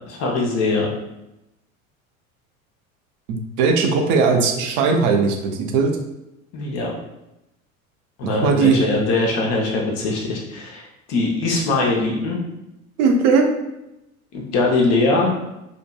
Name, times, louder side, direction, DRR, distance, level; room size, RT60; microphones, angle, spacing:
voice 1, 0.1-0.9 6.5-6.9 8.2-10.8 11.1-12.4 14.3-15.3, left 3 dB, 40° left, -1 dB, 0.8 m, -21 dB
voice 2, 3.3-5.9 8.2-8.8 13.0-13.5, right 5 dB, 45° right, 3 dB, 0.5 m, -18 dB
2.7 x 2.6 x 2.3 m, 0.92 s
figure-of-eight pair, 75°, 42 cm